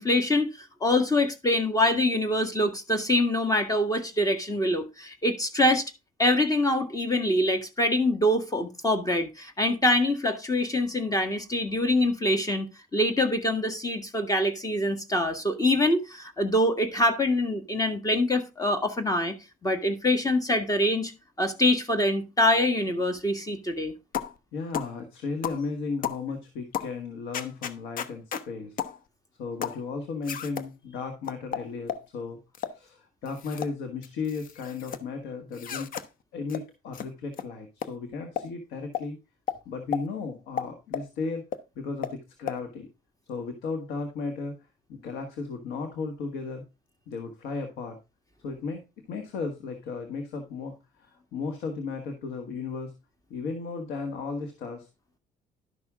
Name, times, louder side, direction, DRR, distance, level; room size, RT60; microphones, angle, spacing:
voice 1, 0.0-5.9 6.2-12.7 12.9-19.3 19.6-21.1 21.4-23.9, left 1 dB, 20° left, 1.7 m, -25 dB
sound 1, 24.1-24.4 24.7-24.9 25.4-25.6 26.0-26.2 26.7-26.9 27.3-28.5 28.8-29.0 29.6-29.8 30.2-30.7 31.3-32.1 32.5-32.8 33.3-33.7 34.0-35.0 35.5-36.1 36.5-36.6 36.9-37.1 37.3-37.5 37.8-37.9 38.4-38.5 38.9-39.1 39.5-39.6 39.9-40.0 40.6-41.1 41.5-41.6 42.0-42.1 42.5-42.6, left 8 dB, 60° left, 1.0 m, -33 dB
voice 2, 24.5-28.8 29.4-32.4 32.7-35.9 36.3-39.2 39.6-41.4 41.7-42.9 43.3-44.5 44.9-46.6 47.1-48.0 48.4-48.8 49.1-52.9 53.3-54.9, left 4 dB, 85° left, 1.6 m, -35 dB
12.0 x 6.1 x 3.6 m
supercardioid pair, 85°, 16 cm